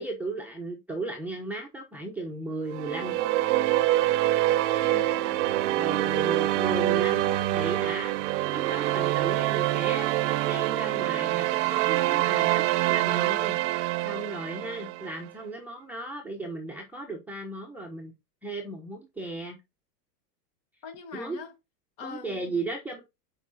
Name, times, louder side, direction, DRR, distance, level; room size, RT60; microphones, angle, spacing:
voice 1, 0.0-3.3 5.7-8.1 8.5-10.1 10.4-13.6 14.0-18.1 18.4-19.6 21.1-21.4 22.0-23.0, right 2 dB, 5° right, 1.0 m, -35 dB
sound 1, 2.7-15.1, right 15 dB, 45° right, 0.8 m, -25 dB
voice 2, 4.8-5.5 20.8-21.6 22.0-22.6, left 5 dB, 40° left, 2.2 m, -43 dB
7.1 x 5.1 x 4.2 m
supercardioid pair, 145°, 49 cm